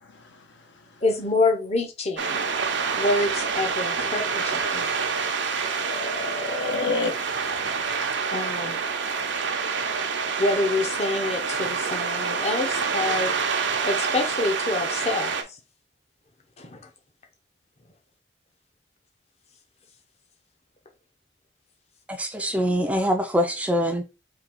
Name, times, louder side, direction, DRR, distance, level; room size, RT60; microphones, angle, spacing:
voice 1, 0.0-1.0 5.4-7.2, left 3 dB, 75° left, 0.9 m, -31 dB
voice 2, 1.0-2.5 2.9-4.9 8.3-8.8 10.4-13.3 13.8-15.6 16.6-16.8, left 2 dB, 35° left, 0.7 m, -26 dB
sound 1, 2.2-15.4, right 5 dB, 75° right, 0.7 m, -27 dB
voice 3, 22.1-24.0, equal, 5° right, 0.4 m, -24 dB
3.8 x 2.8 x 4.4 m
head